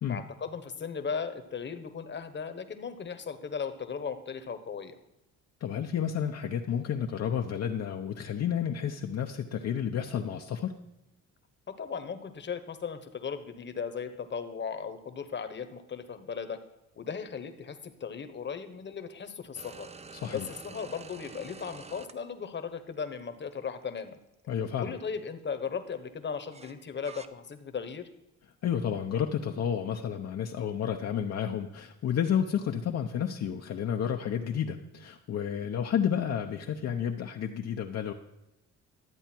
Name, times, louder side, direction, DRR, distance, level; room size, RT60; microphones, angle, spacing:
voice 1, 0.1-5.0 11.7-16.6 17.0-19.9 20.3-24.2 24.8-28.0, left 6 dB, 40° left, 9 dB, 1.2 m, -37 dB
voice 2, 5.6-10.7 20.1-20.5 24.5-24.9 28.6-38.1, left 8 dB, 55° left, 3 dB, 0.8 m, -31 dB
sound 1, 19.5-22.1 23.2-23.3 26.5-27.3, right 4 dB, 20° right, 0.7 m, -47 dB
12.5 x 8.1 x 4.5 m, 0.91 s
cardioid pair, 90°, 30 cm